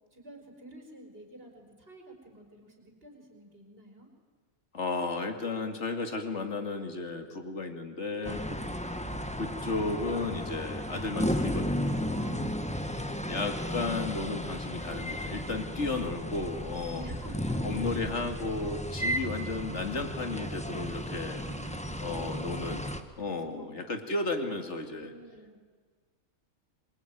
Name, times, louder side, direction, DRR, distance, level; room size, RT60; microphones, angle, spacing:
voice 1, 0.0-4.1 12.0-13.4 15.8-16.2 16.8-17.9 19.0-19.2 21.3-22.0 23.4-24.0 24.5-24.6 24.9-25.6, right 1 dB, 45° right, 3 dB, 5.2 m, -49 dB
voice 2, 4.7-8.6 9.4-12.0 13.3-17.1 17.6-21.4 22.0-22.8 23.2-25.1, left 3 dB, 55° left, 6 dB, 2.7 m, -34 dB
sound 1, 8.2-23.0, equal, 5° left, 1.3 m, -34 dB
26.5 x 23.0 x 9.4 m, 1.5 s
omnidirectional pair, 1.4 m